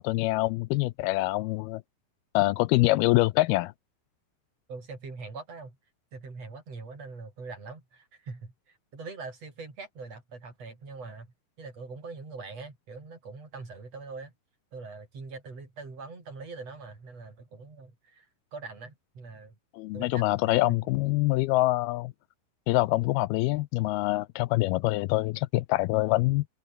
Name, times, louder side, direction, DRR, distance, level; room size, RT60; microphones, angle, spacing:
voice 1, 0.0-1.8 2.3-3.7 19.7-22.1 22.7-26.5, left 19 dB, 80° left, 2.4 m, -25 dB
voice 2, 4.7-5.8 6.1-14.3 14.7-19.6 19.9-20.8, right 4 dB, 40° right, 7.2 m, -43 dB
omnidirectional pair, 4.7 m